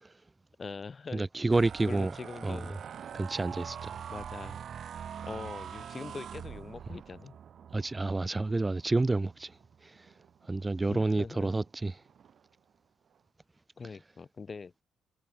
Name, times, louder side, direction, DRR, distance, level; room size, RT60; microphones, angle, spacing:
voice 1, 0.6-1.3 1.9-2.8 4.1-4.6 5.2-7.4 10.9-11.5 13.8-14.7, left 4 dB, 35° left, 2.8 m, -42 dB
voice 2, 1.1-2.1 2.4-2.7 3.1-4.0 7.7-9.6 9.8-10.1 10.5-12.0, right 2 dB, 20° right, 1.2 m, -29 dB
sound 1, 1.5-10.9 11.4-11.7 12.0-12.5, right 8 dB, 60° right, 1.4 m, -44 dB
cardioid pair, 90°, 0 cm